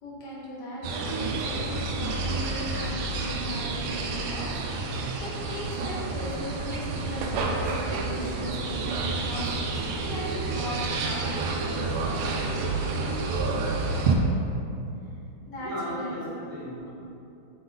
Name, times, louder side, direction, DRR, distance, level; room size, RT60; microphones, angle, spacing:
voice 1, 0.0-12.4 15.5-16.1, equal, 60° left, -5 dB, 1.7 m, -38 dB
sound 1, 0.8-14.2, right 3 dB, 85° right, 1.5 m, -29 dB
voice 2, 15.6-16.9, equal, 10° right, -8 dB, 1.0 m, -36 dB
6.6 x 3.8 x 3.8 m, 2.7 s
omnidirectional pair, 2.2 m